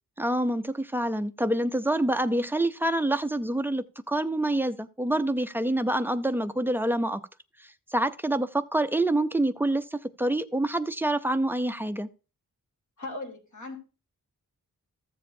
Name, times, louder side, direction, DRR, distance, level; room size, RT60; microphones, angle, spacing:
voice 1, 0.2-7.2 7.6-12.1, right 1 dB, 5° right, 0.5 m, -27 dB
voice 2, 13.0-13.8, left 2 dB, 55° left, 3.1 m, -38 dB
14.5 x 7.3 x 2.6 m
wide cardioid pair, 160°, 35 cm